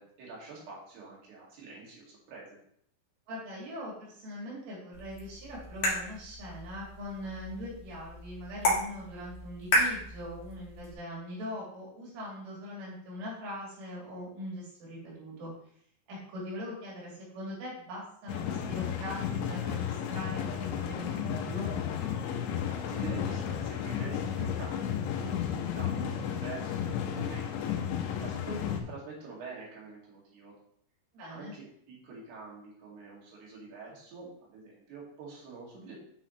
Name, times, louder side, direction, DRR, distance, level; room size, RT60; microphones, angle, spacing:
voice 1, 0.0-2.6 22.7-27.7 28.2-30.5 31.3-36.0, right 4 dB, 60° right, -4 dB, 4.1 m, -46 dB
voice 2, 3.3-15.5 16.1-21.8 31.1-31.6, equal, 85° right, -5 dB, 5.6 m, -41 dB
sound 1, 4.9-10.9, left 1 dB, 45° left, 2.6 m, -33 dB
sound 2, 18.3-28.8, left 8 dB, 75° left, 2.9 m, -33 dB
9.1 x 6.1 x 3.1 m, 0.67 s
omnidirectional pair, 5.4 m